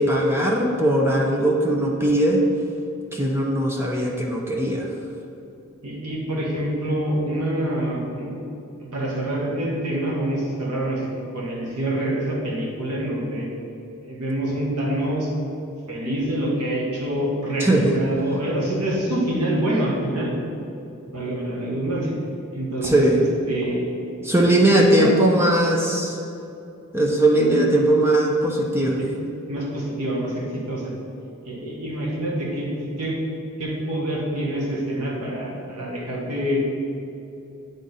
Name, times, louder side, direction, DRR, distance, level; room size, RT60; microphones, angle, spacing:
voice 1, 0.0-2.4 3.1-4.9 17.6-17.9 22.8-23.2 24.2-26.2 26.9-29.0, right 1 dB, 10° right, -1 dB, 0.5 m, -19 dB
voice 2, 5.8-8.3 8.9-11.1 11.3-13.5 14.0-15.3 15.9-20.3 21.1-22.1 22.5-23.9 24.5-25.1 29.0-29.1 29.4-30.9 31.4-33.2 33.6-36.6, right 1 dB, 90° right, -4 dB, 1.6 m, -26 dB
9.4 x 3.7 x 4.0 m, 2.8 s
head